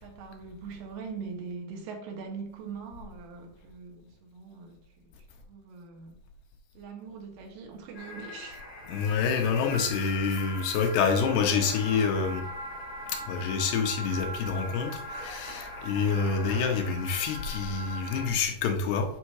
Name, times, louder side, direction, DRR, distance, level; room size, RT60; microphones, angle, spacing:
voice 1, 0.0-5.1 5.5-6.2 6.7-8.6, right 5 dB, 85° right, 3 dB, 3.3 m, -42 dB
sound 1, 7.9-18.3, equal, 55° left, 0.4 m, -40 dB
voice 2, 8.9-12.4 13.1-19.2, left 5 dB, 90° left, 3 dB, 3.1 m, -27 dB
8.8 x 3.6 x 4.8 m, 0.68 s
omnidirectional pair, 4.5 m